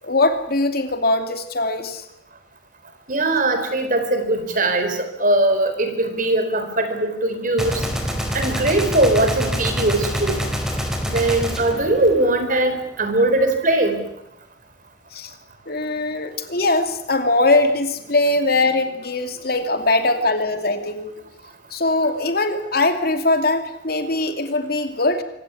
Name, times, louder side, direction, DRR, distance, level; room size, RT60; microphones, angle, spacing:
voice 1, 0.0-2.0 15.1-15.3 15.7-21.1 21.7-25.2, left 2 dB, 55° left, 7 dB, 2.7 m, -21 dB
voice 2, 3.1-7.8 8.3-10.5 11.0-14.0, right 2 dB, 50° right, 8 dB, 4.1 m, -20 dB
Gunshot gunfire, 7.6-12.8, equal, 5° right, 4.1 m, -26 dB
25.0 x 16.5 x 9.8 m, 0.80 s
head